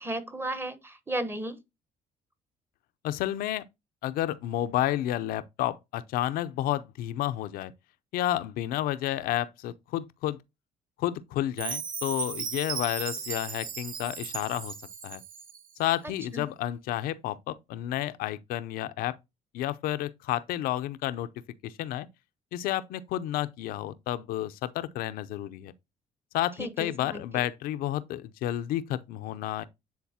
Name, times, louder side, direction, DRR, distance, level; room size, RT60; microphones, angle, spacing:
voice 1, 0.0-1.6 16.3-16.5 26.6-27.2, right 1 dB, 15° right, 1.0 m, -34 dB
voice 2, 3.0-3.6 4.0-7.7 8.1-10.4 11.0-14.7 15.0-15.2 15.8-19.2 19.5-21.3 21.6-22.1 22.5-25.7 26.3-29.6, left 13 dB, 85° left, 0.6 m, -31 dB
Chime, 11.6-15.7, right 6 dB, 70° right, 1.2 m, -36 dB
9.4 x 3.9 x 2.8 m
cardioid pair, 90°, 15 cm